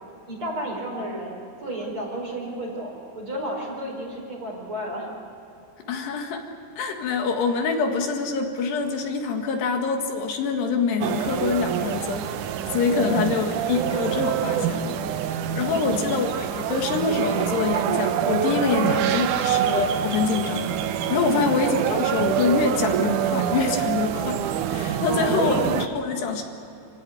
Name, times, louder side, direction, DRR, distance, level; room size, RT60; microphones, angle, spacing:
voice 1, 0.3-1.3 1.6-5.1 13.0-13.7 15.7-16.3 21.3-21.6 25.1-25.6, equal, 30° right, -1 dB, 5.6 m, -32 dB
voice 2, 5.9-6.4 6.8-12.3 12.7-15.0 15.6-20.6 21.1-24.4 24.7-26.4, left 5 dB, 75° left, 3 dB, 3.9 m, -25 dB
sound 1, 11.0-25.9, right 9 dB, 75° right, 1.9 m, -26 dB
27.0 x 16.5 x 9.8 m, 2.9 s
omnidirectional pair, 4.8 m